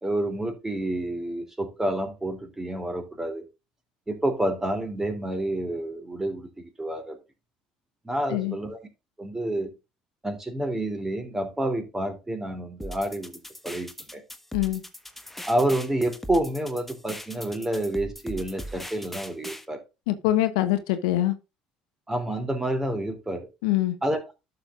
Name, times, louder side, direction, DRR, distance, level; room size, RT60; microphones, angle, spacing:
voice 1, 0.0-3.4 4.1-7.2 8.0-8.8 9.2-9.7 10.2-13.4 13.6-14.2 15.5-19.8 22.1-23.5 24.0-24.3, right 1 dB, 15° right, 2.9 m, -29 dB
sound 1, 12.8-19.7, equal, 5° left, 1.3 m, -40 dB
voice 2, 20.1-21.3 23.6-24.0, left 14 dB, 75° left, 0.9 m, -24 dB
11.5 x 6.6 x 2.5 m
hypercardioid pair, 70°, 3 cm